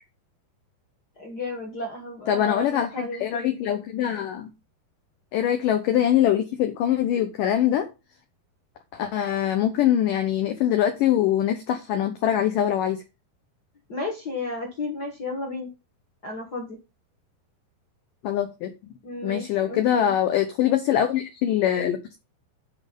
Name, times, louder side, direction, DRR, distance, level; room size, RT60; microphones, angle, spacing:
voice 1, 1.2-3.5 13.9-15.7 16.2-16.8 19.0-20.1, left 2 dB, 65° left, 1 dB, 0.9 m, -33 dB
voice 2, 2.3-4.5 5.3-7.9 8.9-13.0 18.2-18.7 19.2-22.2, left 11 dB, 85° left, 7 dB, 1.9 m, -23 dB
11.0 x 4.4 x 5.3 m, 0.27 s
omnidirectional pair, 5.1 m